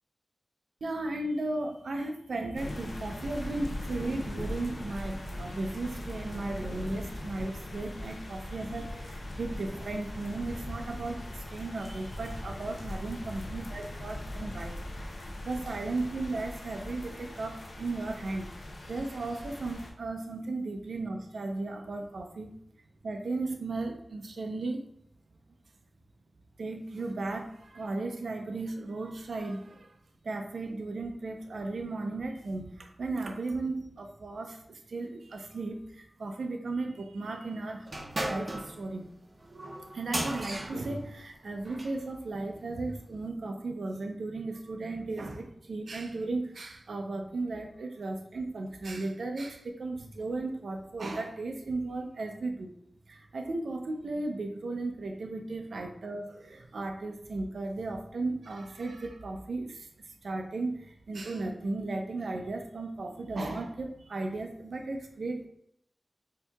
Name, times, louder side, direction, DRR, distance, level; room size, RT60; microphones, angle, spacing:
voice 1, 0.8-14.8 15.1-22.5 23.0-24.9 26.6-30.0 30.2-37.9 38.2-39.1 39.9-52.7 53.1-59.9 60.2-65.5, right 2 dB, 90° right, 3 dB, 0.4 m, -35 dB
sound 1, 2.5-19.9, left 1 dB, 75° left, 0.5 m, -40 dB
sound 2, 37.9-42.0, right 1 dB, 40° right, 0.6 m, -37 dB
4.4 x 2.7 x 2.3 m, 0.71 s
wide cardioid pair, 75°, 0 cm